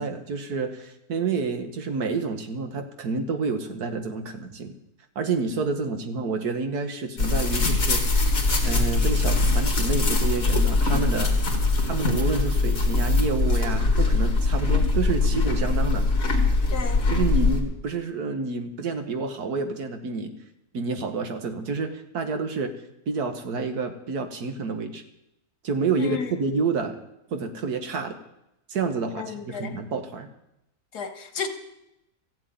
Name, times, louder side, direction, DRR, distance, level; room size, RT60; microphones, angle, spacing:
voice 1, 0.0-4.8 5.2-8.0 8.6-11.3 11.8-16.1 17.1-20.3 20.7-22.7 23.1-25.0 25.6-27.0 27.3-28.2 28.7-30.3, right 4 dB, 75° right, 7 dB, 1.8 m, -29 dB
sound 1, 7.2-17.6, left 3 dB, 60° left, 2.5 m, -22 dB
voice 2, 16.7-17.0 26.0-26.4 29.2-29.7 30.9-31.5, left 5 dB, 80° left, 7 dB, 2.0 m, -33 dB
14.5 x 7.7 x 9.4 m, 0.86 s
omnidirectional pair, 1.7 m